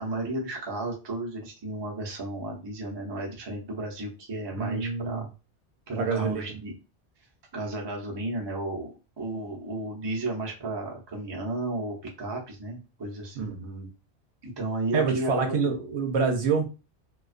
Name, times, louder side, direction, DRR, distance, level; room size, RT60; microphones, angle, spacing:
voice 1, 0.0-5.3 5.9-6.7 7.5-8.9 9.2-13.5 14.4-15.8, right 2 dB, 30° right, -1 dB, 0.6 m, -33 dB
voice 2, 4.6-5.3 6.0-6.5 13.4-13.9 14.9-16.6, right 5 dB, 80° right, 3 dB, 0.9 m, -27 dB
2.3 x 2.2 x 2.4 m, 0.31 s
omnidirectional pair, 1.1 m